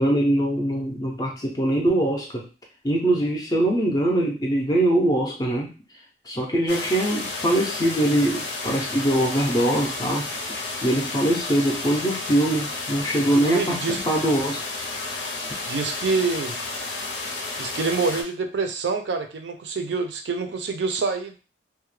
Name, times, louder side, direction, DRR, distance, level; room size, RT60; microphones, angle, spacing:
voice 1, 0.0-2.5 2.8-5.7 6.3-10.3 10.8-14.6, right 1 dB, 20° left, 0 dB, 0.4 m, -22 dB
sound 1, 6.7-18.2, left 3 dB, 90° left, 0.6 m, -32 dB
voice 2, 13.4-14.0 15.7-16.6 17.6-21.4, right 4 dB, 80° right, 6 dB, 0.4 m, -26 dB
2.2 x 2.0 x 3.1 m, 0.34 s
head